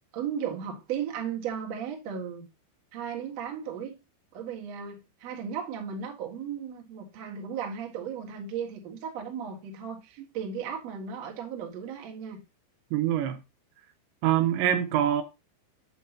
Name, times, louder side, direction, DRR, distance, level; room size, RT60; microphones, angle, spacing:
voice 1, 0.1-2.5 2.9-3.9 4.3-12.4 14.6-15.0, right 7 dB, 60° right, 1.8 m, -35 dB
voice 2, 12.9-13.4 14.2-15.2, right 11 dB, 80° right, 2.8 m, -24 dB
8.4 x 7.6 x 2.8 m
omnidirectional pair, 5.5 m